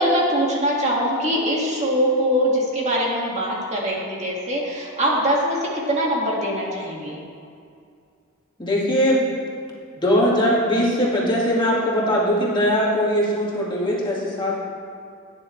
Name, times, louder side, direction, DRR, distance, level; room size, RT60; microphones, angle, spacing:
voice 1, 0.0-7.2, equal, 30° right, -3 dB, 1.9 m, -22 dB
voice 2, 8.6-9.4 10.0-14.6, equal, 20° left, -5 dB, 2.0 m, -20 dB
16.5 x 10.0 x 3.2 m, 2.3 s
head